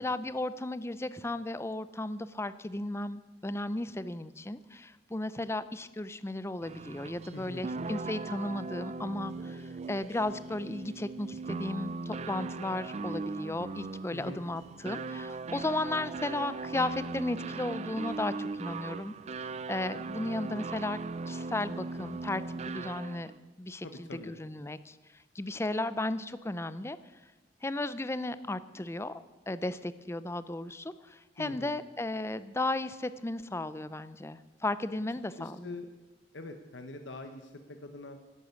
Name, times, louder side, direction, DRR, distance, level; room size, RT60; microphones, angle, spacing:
voice 1, 0.0-21.0 21.3-23.3 23.6-25.0 25.3-27.0 27.6-35.7, left 2 dB, 15° left, 15 dB, 0.5 m, -35 dB
sound 1, 6.6-23.4, right 3 dB, 40° right, 0.4 m, -39 dB
voice 2, 7.3-7.7 14.1-14.4 23.8-24.4 31.4-31.7 35.4-35.9 36.3-38.2, left 2 dB, 90° left, 6 dB, 1.0 m, -44 dB
11.5 x 11.0 x 8.2 m, 1.2 s
head